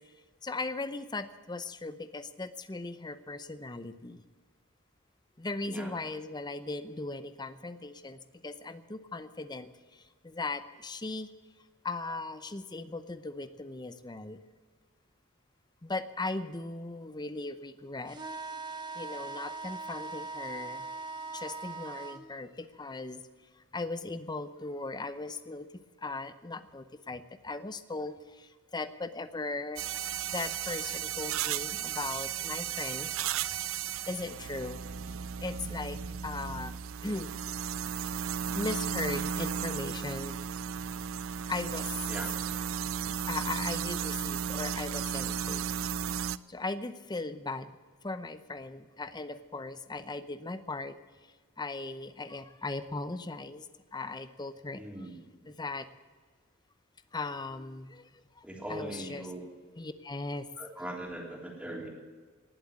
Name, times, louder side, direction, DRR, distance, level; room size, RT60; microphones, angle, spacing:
voice 1, 0.4-4.2 5.4-11.3 11.8-14.4 15.8-18.2 18.9-20.9 21.3-23.2 23.7-25.7 26.0-29.8 30.3-33.1 34.1-35.1 35.4-37.3 38.5-40.4 41.5-42.0 43.3-45.7 46.5-47.7 48.0-51.0 51.6-55.1 55.5-55.9 57.1-58.4 58.7-59.2 59.8-60.5, left 3 dB, 20° left, 12 dB, 0.7 m, -38 dB
sound 1, 18.1-22.2, right 3 dB, 20° right, 1.3 m, -40 dB
sound 2, 29.8-46.4, right 8 dB, 90° right, 0.5 m, -34 dB
voice 2, 54.7-55.5 58.4-59.4 60.6-61.9, right 1 dB, 5° right, -1 dB, 3.4 m, -40 dB
19.5 x 7.7 x 8.8 m, 1.5 s
head